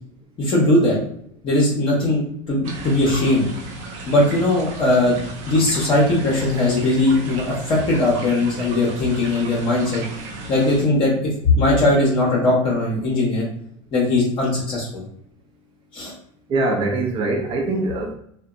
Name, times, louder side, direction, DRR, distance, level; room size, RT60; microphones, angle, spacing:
voice 1, 0.4-1.0 1.4-2.2 2.5-3.5 4.0-5.2 5.4-10.1 10.5-13.5 13.9-15.0 15.9-16.1, left 2 dB, 35° left, -4 dB, 0.8 m, -19 dB
sound 1, 2.6-10.9, right 2 dB, 80° right, 0.6 m, -35 dB
voice 2, 16.5-18.1, right 2 dB, 35° right, 1 dB, 0.5 m, -22 dB
2.7 x 2.2 x 2.4 m, 0.69 s
supercardioid pair, 120°, 15 cm